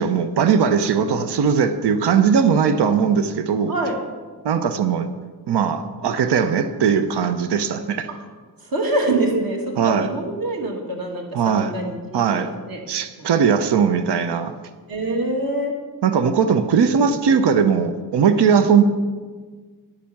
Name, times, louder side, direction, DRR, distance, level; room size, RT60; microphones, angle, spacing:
voice 1, 0.0-3.7 4.4-5.1 5.5-8.1 9.8-10.1 11.3-11.7 12.1-12.5 12.9-14.5 16.0-18.8, right 6 dB, 75° right, 10 dB, 0.9 m, -19 dB
voice 2, 8.7-12.2 12.7-12.8 13.2-13.3 14.9-15.7 16.9-17.1, right 2 dB, 55° right, 1 dB, 2.5 m, -25 dB
10.5 x 10.0 x 7.2 m, 1.5 s
wide cardioid pair, 155°, 41 cm